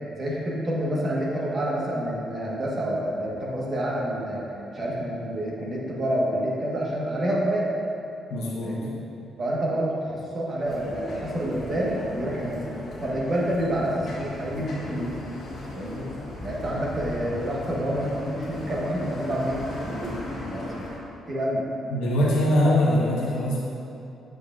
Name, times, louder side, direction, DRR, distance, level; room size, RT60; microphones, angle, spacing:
voice 1, 0.1-4.4 4.7-7.7 8.6-8.9 9.4-12.6 13.0-15.1 15.7-16.1 16.4-20.2 20.5-20.7 21.3-21.6 22.2-22.4, equal, 40° right, -4 dB, 1.4 m, -28 dB
voice 2, 8.3-8.8 21.9-23.6, left 1 dB, 85° left, -5 dB, 1.2 m, -22 dB
sound 1, 10.6-21.0, left 1 dB, 60° left, 1.5 m, -37 dB
7.9 x 5.3 x 2.5 m, 2.7 s
cardioid pair, 90°, 0 cm